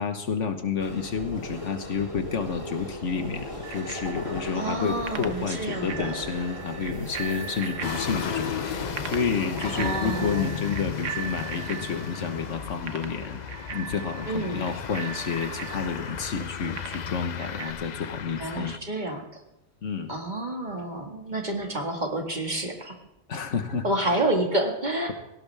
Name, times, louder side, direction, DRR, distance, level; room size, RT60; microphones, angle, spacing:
voice 1, 0.0-13.4 13.7-18.8 19.8-20.2 23.3-24.2, left 6 dB, 80° left, 7 dB, 1.6 m, -30 dB
sound 1, 0.8-10.5, left 1 dB, 25° left, 2.5 m, -38 dB
Bicycle bell, 3.6-17.7, right 7 dB, 90° right, 1.4 m, -39 dB
voice 2, 4.5-6.2 9.7-10.6 14.3-14.6 18.4-19.3 20.1-23.0 23.8-25.1, right 1 dB, 40° right, 2 dB, 2.1 m, -29 dB
sound 2, 7.8-18.8, left 8 dB, 50° left, 0.6 m, -35 dB
17.5 x 17.5 x 3.5 m, 0.91 s
omnidirectional pair, 1.2 m